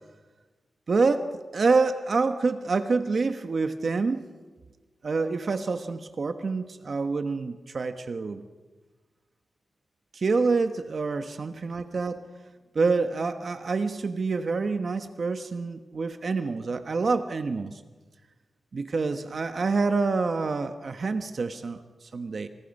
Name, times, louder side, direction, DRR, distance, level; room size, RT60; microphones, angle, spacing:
voice 1, 0.9-4.3 5.0-8.4 10.1-12.2 12.7-17.8 18.7-22.5, right 4 dB, 50° right, 8 dB, 1.1 m, -27 dB
28.5 x 28.5 x 5.4 m, 1.3 s
wide cardioid pair, 115°, 0 cm